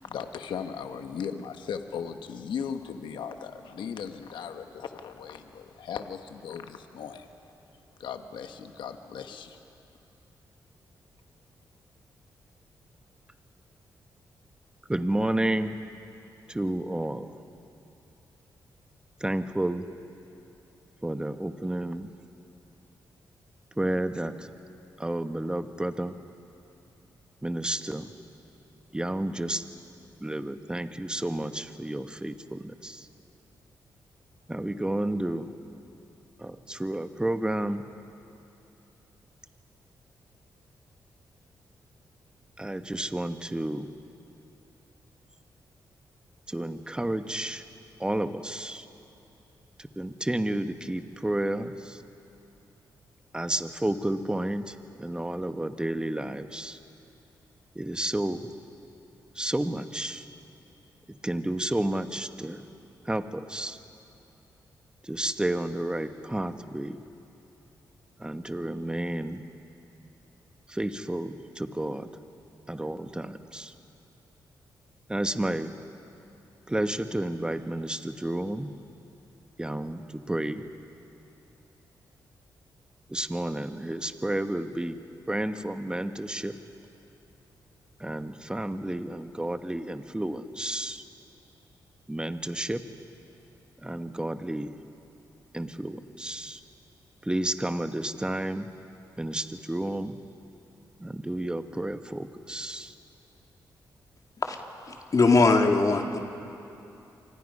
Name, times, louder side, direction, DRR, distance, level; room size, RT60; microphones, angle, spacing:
voice 1, 0.1-7.3 8.0-9.6, left 7 dB, 80° left, 7 dB, 1.2 m, -37 dB
voice 2, 14.9-15.7 16.5-17.3 19.2-19.8 21.0-22.1 23.8-24.5 25.0-26.2 27.4-28.1 28.9-29.6 30.2-33.1 34.5-35.5 36.4-37.9 42.6-43.9 46.5-47.6 48.0-48.8 49.8-52.0 53.3-56.8 57.7-58.5 59.3-60.2 61.2-62.6 63.0-63.8 65.0-67.0 68.2-69.4 70.7-72.1 72.7-73.7 75.1-75.7 76.7-78.7 79.6-80.6 83.1-85.0 85.3-86.5 88.0-91.0 92.1-92.8 93.8-94.7 95.5-96.6 97.2-98.7 99.2-100.2 101.0-102.9, right 1 dB, 10° right, 8 dB, 1.3 m, -31 dB
voice 3, 105.1-106.2, left 3 dB, 45° left, 3 dB, 2.4 m, -20 dB
28.5 x 25.0 x 5.5 m, 2.8 s
cardioid pair, 60°, 8 cm